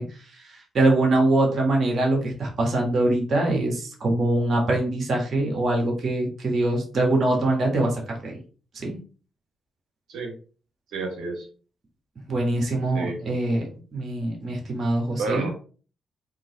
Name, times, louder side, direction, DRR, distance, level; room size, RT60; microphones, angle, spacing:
voice 1, 0.0-8.4 8.7-9.0 12.3-13.6 13.9-15.4, right 2 dB, 55° right, 0 dB, 1.6 m, -23 dB
voice 2, 10.9-11.5 12.9-13.2 15.2-15.6, right 3 dB, 75° right, 2 dB, 1.2 m, -30 dB
3.7 x 3.0 x 3.9 m, 0.38 s
hypercardioid pair, 45°, 0 cm